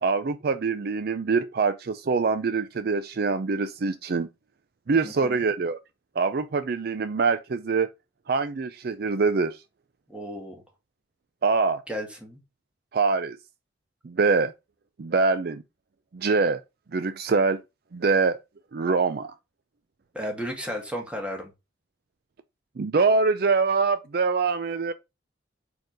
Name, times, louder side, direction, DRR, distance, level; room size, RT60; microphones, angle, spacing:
voice 1, 0.0-4.3 4.9-5.8 6.2-7.9 8.3-9.6 11.4-11.8 12.9-13.4 14.0-14.5 15.0-15.6 16.1-16.6 16.9-17.6 17.9-18.4 18.7-19.3 22.8-24.9, right 4 dB, 55° right, 0.4 m, -24 dB
voice 2, 5.0-5.4 10.1-10.6 11.9-12.4 20.1-21.5, equal, 5° right, 1.8 m, -34 dB
4.7 x 4.4 x 5.2 m
head